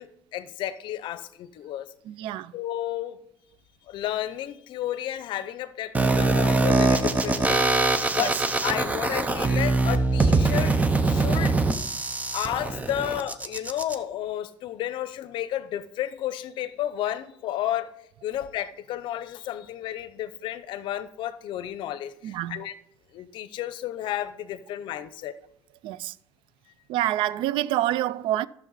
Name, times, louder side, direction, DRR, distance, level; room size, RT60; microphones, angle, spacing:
voice 1, 0.0-1.9 2.5-3.2 3.9-7.7 8.1-10.8 11.0-11.6 12.3-22.7 23.1-25.4, left 12 dB, 75° left, 0.6 m, -32 dB
voice 2, 2.1-2.5 8.2-8.3 22.2-22.6 25.8-26.1 26.9-28.5, right 14 dB, 85° right, 0.3 m, -27 dB
sound 1, 5.9-13.9, right 3 dB, 15° right, 0.7 m, -23 dB
12.0 x 6.8 x 4.0 m
cardioid pair, 130°, 8 cm